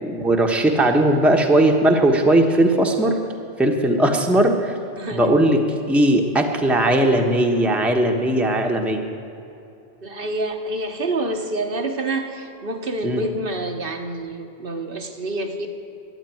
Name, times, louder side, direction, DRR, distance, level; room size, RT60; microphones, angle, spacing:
voice 1, 0.0-3.2 3.6-4.7 5.1-5.6 5.9-9.0 13.0-13.2, right 1 dB, ahead, 2 dB, 1.0 m, -18 dB
voice 2, 5.0-5.4 10.0-15.7, right 2 dB, 60° right, 3 dB, 1.3 m, -27 dB
12.0 x 9.9 x 9.2 m, 2.8 s
omnidirectional pair, 1.1 m